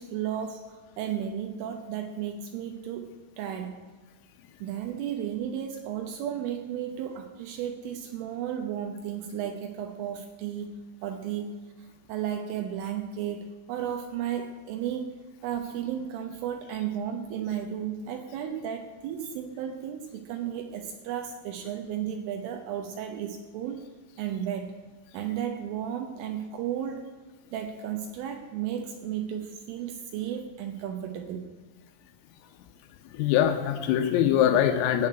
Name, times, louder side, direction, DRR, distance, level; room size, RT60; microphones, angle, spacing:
voice 1, 0.0-3.8 4.6-15.2 15.4-23.8 24.2-24.8 25.1-27.1 27.5-31.5, right 9 dB, 80° right, 5 dB, 3.4 m, -34 dB
voice 2, 33.1-35.1, left 10 dB, 85° left, 6 dB, 3.5 m, -23 dB
16.5 x 6.4 x 8.7 m, 1.4 s
omnidirectional pair, 6.0 m